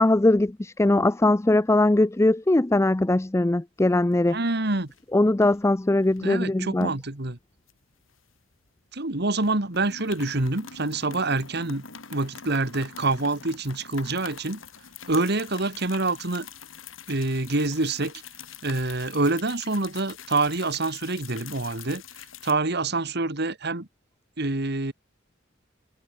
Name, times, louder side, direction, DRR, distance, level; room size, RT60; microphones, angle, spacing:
voice 1, 0.0-4.4 5.1-6.9, left 2 dB, 15° left, 0.4 m, -21 dB
sound 1, 3.9-4.5 4.8-5.0 5.4-6.2 6.8-8.7 9.0-9.1 9.4-22.5, left 7 dB, 90° left, 4.2 m, -44 dB
voice 2, 4.3-4.9 6.2-7.4 8.9-11.8 12.1-14.6 15.1-16.5 17.1-18.1 18.6-22.0 22.4-23.9 24.4-24.9, right 2 dB, 55° right, 2.2 m, -26 dB
head